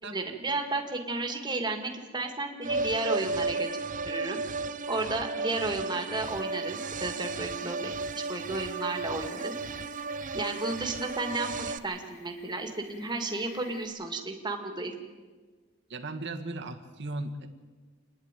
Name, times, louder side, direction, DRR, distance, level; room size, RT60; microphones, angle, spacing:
voice 1, 0.0-4.4 4.9-9.6 10.3-14.9, right 2 dB, 20° right, 4 dB, 2.1 m, -33 dB
sound 1, 2.6-11.8, right 3 dB, 40° right, 0.6 m, -34 dB
sound 2, 6.2-13.9, left 3 dB, 70° left, 4.9 m, -56 dB
voice 2, 15.9-17.5, right 2 dB, 60° right, 5 dB, 1.7 m, -37 dB
27.0 x 10.5 x 9.1 m, 1.4 s
head